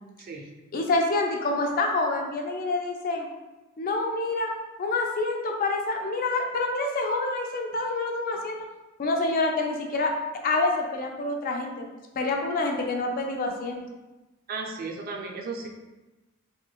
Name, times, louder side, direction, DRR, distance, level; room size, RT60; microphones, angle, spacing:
voice 1, 0.7-3.3 3.8-4.5 4.8-8.6 9.0-10.1 10.4-11.9 12.2-13.8, left 2 dB, 45° left, 2 dB, 0.4 m, -27 dB
voice 2, 14.5-15.7, right 4 dB, 45° right, 0 dB, 0.4 m, -35 dB
3.0 x 2.9 x 2.3 m, 1.1 s
head